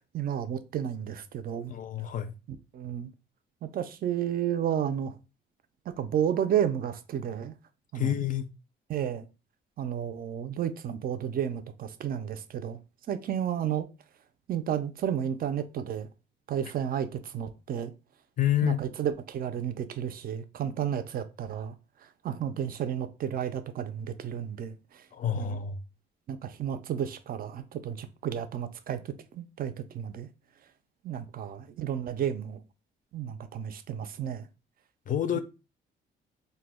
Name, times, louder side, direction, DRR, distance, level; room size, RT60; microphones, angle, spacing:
voice 1, 0.1-1.7 2.7-3.1 3.6-5.1 6.0-7.5 7.9-8.1 8.9-9.3 9.8-12.8 13.1-13.9 14.5-16.1 16.5-17.9 18.6-21.7 22.2-25.0 25.4-25.6 26.3-30.3 31.0-32.6 33.1-34.5 35.3-35.4, right 9 dB, 50° right, 0.4 m, -32 dB
voice 2, 1.7-2.3 7.9-8.5 18.4-18.9 25.1-25.8 35.1-35.4, left 11 dB, 45° left, 0.4 m, -28 dB
2.1 x 2.1 x 3.4 m
cardioid pair, 90°, 20 cm